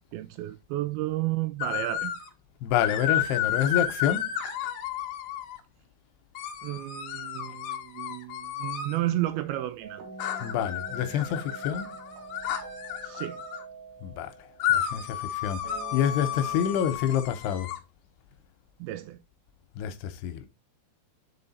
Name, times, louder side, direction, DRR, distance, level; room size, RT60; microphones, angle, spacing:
voice 1, 0.1-2.2 6.6-10.1 13.0-13.4 18.8-19.2, right 15 dB, 80° right, 2.3 m, -32 dB
sound 1, 1.6-2.3 2.8-5.6 6.3-9.0 10.2-13.6 14.6-17.8, left 10 dB, 65° left, 2.1 m, -32 dB
voice 2, 2.6-4.3 10.4-11.9 14.0-14.3 14.7-15.6 15.9-17.7 19.8-20.4, left 9 dB, 85° left, 2.8 m, -28 dB
sound 2, 9.8-14.9 15.6-16.8, right 4 dB, 60° right, 2.4 m, -44 dB
5.5 x 5.4 x 4.0 m
omnidirectional pair, 4.7 m